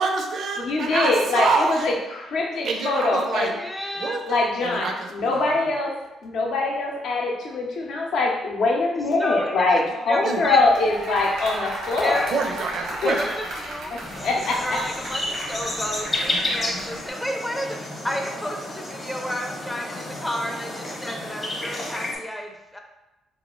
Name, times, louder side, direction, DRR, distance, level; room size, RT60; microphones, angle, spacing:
voice 1, 0.0-1.9 2.6-3.5 3.9-5.8 9.9-10.0 10.2-10.5 12.3-13.3, right 4 dB, 65° right, 3 dB, 0.4 m, -27 dB
voice 2, 0.6-1.5 1.8-1.9 2.3-3.5 4.3-4.9 5.1-5.9 6.2-12.2 13.0-13.1 14.2-14.8, left 3 dB, 70° left, -1 dB, 0.6 m, -23 dB
voice 3, 3.6-4.2 9.2-10.6 12.0-12.3 13.0-13.3 13.6-22.8, equal, 10° left, 2 dB, 0.4 m, -31 dB
sound 1, 10.4-17.1, right 1 dB, 90° right, 0.8 m, -35 dB
sound 2, 14.0-22.2, left 1 dB, 30° left, 0.8 m, -31 dB
2.6 x 2.4 x 3.0 m, 0.99 s
cardioid pair, 90°, 0 cm